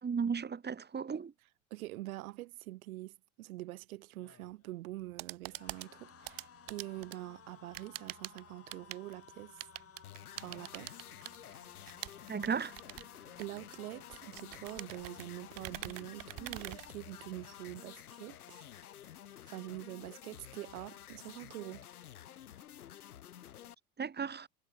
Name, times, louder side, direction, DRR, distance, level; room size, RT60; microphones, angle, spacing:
voice 1, 0.0-1.3 12.3-12.8 24.0-24.5, right 6 dB, 20° right, 3.8 m, -35 dB
voice 2, 1.7-9.6 10.4-11.0 13.4-18.7 19.5-21.9, right 18 dB, 70° right, 4.2 m, -45 dB
sound 1, 4.0-19.2 19.6-19.8 20.1-20.9, left 8 dB, 30° left, 7.8 m, -60 dB
sound 2, 4.9-17.5, right 17 dB, 50° right, 3.5 m, -47 dB
sound 3, 10.0-23.7, left 11 dB, 80° left, 3.2 m, -51 dB
hypercardioid pair, 80°, 44 cm